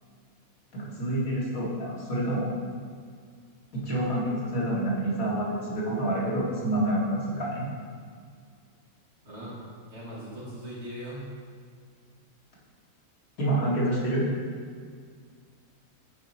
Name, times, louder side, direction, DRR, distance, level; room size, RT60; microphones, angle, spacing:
voice 1, 0.7-2.5 3.8-7.7 13.4-14.2, right 1 dB, 70° left, -6 dB, 2.2 m, -27 dB
voice 2, 9.2-9.6 9.9-11.3, equal, 50° right, -7 dB, 2.2 m, -39 dB
8.7 x 4.3 x 4.3 m, 2.1 s
omnidirectional pair, 1.5 m